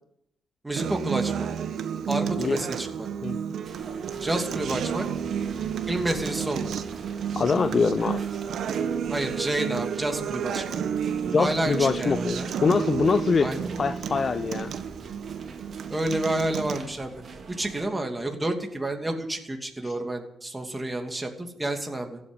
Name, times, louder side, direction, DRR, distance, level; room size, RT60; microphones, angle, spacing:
voice 1, 0.6-1.5 2.1-3.1 4.2-5.1 5.9-6.7 9.1-10.8 11.4-12.5 13.4-13.7 15.9-17.1 17.5-22.2, right 1 dB, 15° right, 3 dB, 2.7 m, -29 dB
Acoustic guitar, 0.8-16.8, right 7 dB, 65° right, 1.3 m, -31 dB
sound 1, 3.6-17.9, right 4 dB, 45° right, 3.0 m, -45 dB
voice 2, 7.4-8.2 11.3-14.7 19.8-19.9, left 5 dB, 40° left, 12 dB, 0.6 m, -24 dB
15.5 x 8.7 x 9.9 m, 0.81 s
cardioid pair, 90°, 0 cm